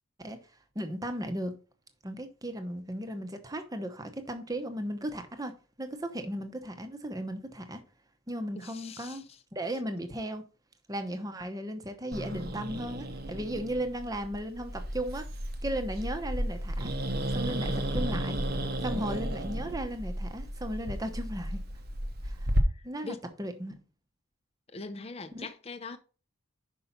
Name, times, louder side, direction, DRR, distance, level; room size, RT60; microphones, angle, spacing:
voice 1, 0.7-1.5 2.0-5.5 5.8-7.8 8.3-9.2 9.5-10.4 10.9-15.3 15.6-16.9 17.3-18.4 18.8-21.6 22.2-22.5 22.8-23.7 25.3-25.5, right 1 dB, 15° right, 0.9 m, -36 dB
voice 2, 8.6-9.2 22.7-23.2 24.7-26.0, left 4 dB, 30° left, 0.6 m, -42 dB
Growling, 12.1-22.6, equal, 45° right, 0.9 m, -33 dB
5.5 x 5.4 x 5.8 m
head